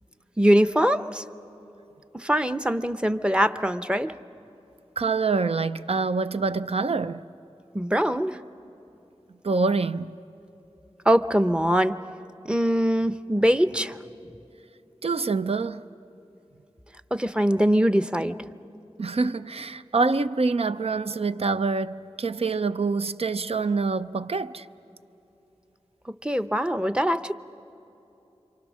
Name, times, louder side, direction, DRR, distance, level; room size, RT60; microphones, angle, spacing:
voice 1, 0.4-1.2 2.1-4.1 7.7-8.4 11.0-12.0 12.4-14.0 17.1-18.5 26.1-27.3, equal, 10° right, 0.7 m, -22 dB
voice 2, 5.0-7.2 9.4-10.1 15.0-15.9 19.0-24.7, right 4 dB, 65° right, 0.6 m, -26 dB
28.0 x 25.5 x 6.3 m
wide cardioid pair, 50°, 11 cm